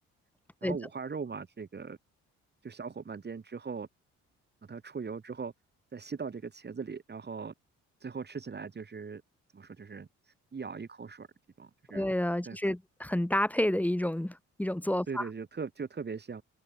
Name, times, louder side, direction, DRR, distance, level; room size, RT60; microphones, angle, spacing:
voice 1, 0.6-2.0 2.6-3.9 4.7-5.5 5.9-7.5 8.0-9.2 9.5-11.3 11.6-12.1 12.4-12.6 15.1-16.4, right 5 dB, 35° right, 3.5 m, -40 dB
voice 2, 11.9-15.3, left 1 dB, 5° left, 1.5 m, -29 dB
open air
cardioid pair, 90°, 30 cm